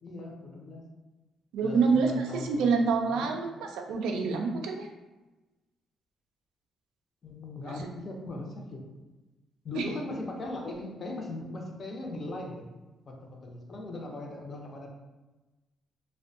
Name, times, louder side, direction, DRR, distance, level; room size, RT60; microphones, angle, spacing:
voice 1, 0.0-0.8 1.6-3.3 7.2-8.8 9.6-12.6 13.1-14.9, left 2 dB, 45° left, 1 dB, 0.5 m, -39 dB
voice 2, 1.5-4.9 7.7-7.8 9.8-9.9, right 4 dB, 90° right, 3 dB, 0.3 m, -27 dB
2.5 x 2.1 x 2.5 m, 1.1 s
cardioid pair, 90°, 0 cm